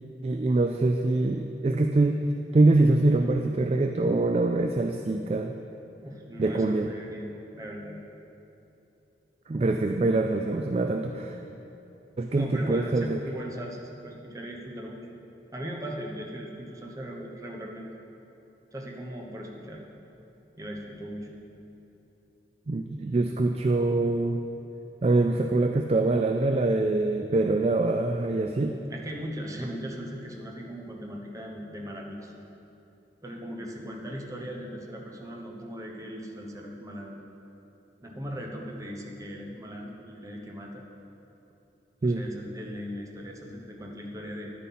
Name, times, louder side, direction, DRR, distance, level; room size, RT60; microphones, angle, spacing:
voice 1, 0.2-2.2 2.5-5.6 6.4-6.9 9.5-11.4 12.2-13.2 22.7-24.4 25.0-28.7 42.0-42.2, right 2 dB, 35° right, 5 dB, 0.3 m, -24 dB
voice 2, 6.0-8.0 12.3-15.0 15.5-17.9 18.7-19.9 20.6-21.3 28.9-32.3 33.2-37.2 38.0-40.8 42.0-44.5, equal, 20° right, 0 dB, 1.0 m, -38 dB
10.5 x 9.1 x 4.2 m, 2.9 s
head